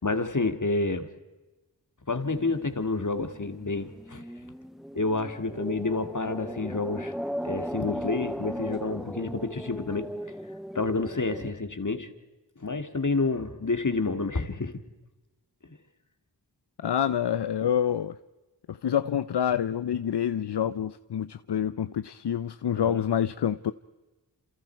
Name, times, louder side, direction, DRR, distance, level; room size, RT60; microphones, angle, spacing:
voice 1, 0.0-1.1 2.1-4.2 4.9-7.1 7.4-10.1 10.7-12.1 12.6-14.8 15.6-15.8 22.7-23.0, left 3 dB, 45° left, 2.3 m, -29 dB
sound 1, 2.2-11.5, equal, ahead, 0.7 m, -38 dB
voice 2, 16.8-18.1 18.7-23.7, left 9 dB, 70° left, 0.7 m, -27 dB
28.0 x 28.0 x 4.6 m
cardioid pair, 45°, 42 cm